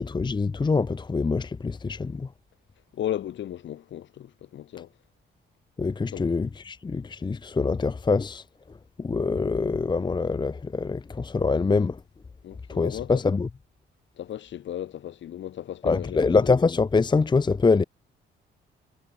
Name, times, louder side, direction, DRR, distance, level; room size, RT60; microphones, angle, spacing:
voice 1, 0.0-2.3 5.8-8.4 9.0-12.0 12.7-13.5 15.8-17.8, left 4 dB, 20° left, 0.8 m, -24 dB
voice 2, 2.9-4.9 6.1-6.2 12.4-13.1 14.2-16.3, left 11 dB, 70° left, 2.2 m, -35 dB
cardioid pair, 90°, 20 cm